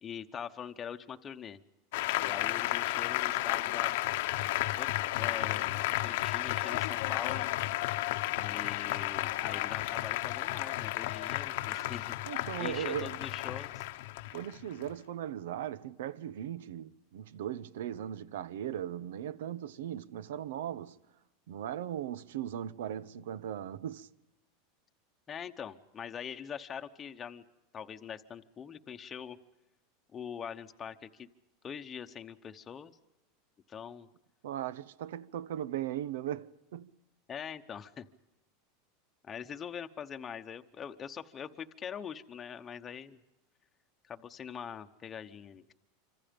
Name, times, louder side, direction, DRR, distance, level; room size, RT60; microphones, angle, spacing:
voice 1, 0.0-1.6 2.2-3.9 4.8-4.9 5.2-7.5 8.4-13.8 25.3-27.4 27.7-29.4 30.1-31.3 31.6-32.9 33.7-34.1 37.3-38.0 39.2-43.2 44.0-45.7, left 7 dB, 20° left, 1.0 m, -43 dB
Applause, 1.9-14.9, left 17 dB, 65° left, 1.0 m, -33 dB
voice 2, 12.3-13.2 14.3-21.0 21.5-24.1 34.4-36.9, right 10 dB, 85° right, 0.9 m, -38 dB
26.5 x 26.0 x 5.3 m
supercardioid pair, 160°, 0 cm